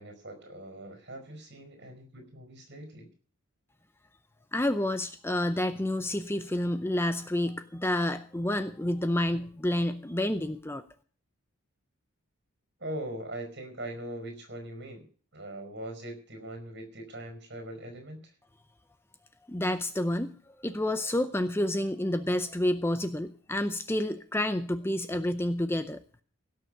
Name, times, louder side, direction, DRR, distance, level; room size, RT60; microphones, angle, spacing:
voice 1, 0.0-3.1 12.8-15.1 15.3-18.3, right 1 dB, 50° right, 6 dB, 4.9 m, -41 dB
voice 2, 4.5-10.8 19.5-20.3 20.6-26.0, left 1 dB, 10° left, 10 dB, 0.5 m, -29 dB
17.0 x 6.6 x 7.8 m, 0.44 s
head